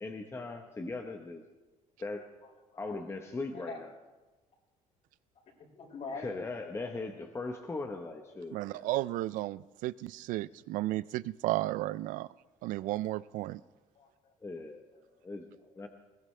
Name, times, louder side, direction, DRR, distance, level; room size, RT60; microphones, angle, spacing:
voice 1, 0.0-1.4 2.0-2.3 2.8-4.0 6.1-8.9 14.4-15.5 15.7-15.9, left 3 dB, 20° left, 4 dB, 1.1 m, -39 dB
voice 2, 2.4-2.9 3.5-3.8 5.7-6.3 13.6-13.7 13.9-14.3 14.9-15.0 15.7-15.8, left 4 dB, 60° left, -2 dB, 5.7 m, -44 dB
voice 3, 8.5-12.3 12.6-13.6, right 16 dB, 80° right, 18 dB, 0.4 m, -33 dB
20.5 x 18.0 x 3.3 m, 1.2 s
cardioid pair, 115°, 13 cm